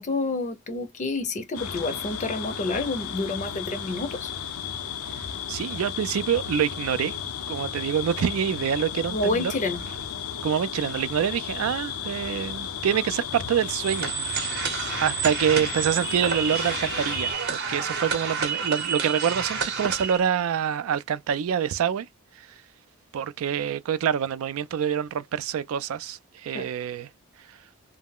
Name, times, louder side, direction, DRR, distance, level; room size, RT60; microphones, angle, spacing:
voice 1, 0.0-4.3 9.1-9.8 26.5-26.7, left 2 dB, 35° left, 0.5 m, -29 dB
sound 1, 1.5-17.3, left 8 dB, 85° left, 0.5 m, -34 dB
voice 2, 5.5-7.1 7.5-9.5 10.4-14.5 15.0-22.1 23.1-27.1, right 8 dB, 70° right, 0.3 m, -26 dB
sound 2, 13.8-20.2, right 6 dB, 50° right, 0.7 m, -29 dB
2.3 x 2.0 x 3.4 m
head